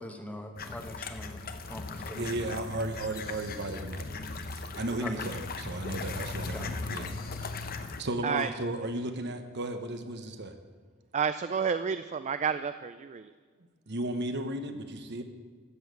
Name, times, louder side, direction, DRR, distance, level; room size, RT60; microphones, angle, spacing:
voice 1, 0.0-2.3 5.0-5.3 6.5-6.8, left 1 dB, 5° left, 5 dB, 1.2 m, -42 dB
sound 1, 0.6-8.0, left 3 dB, 45° left, 0.9 m, -38 dB
voice 2, 2.2-4.1 4.5-7.1 7.4-7.6 8.0-10.5 13.9-15.2, right 1 dB, 55° right, 8 dB, 1.1 m, -35 dB
voice 3, 11.1-13.3, right 6 dB, 35° right, 11 dB, 0.3 m, -30 dB
13.5 x 7.2 x 8.2 m, 1.5 s
head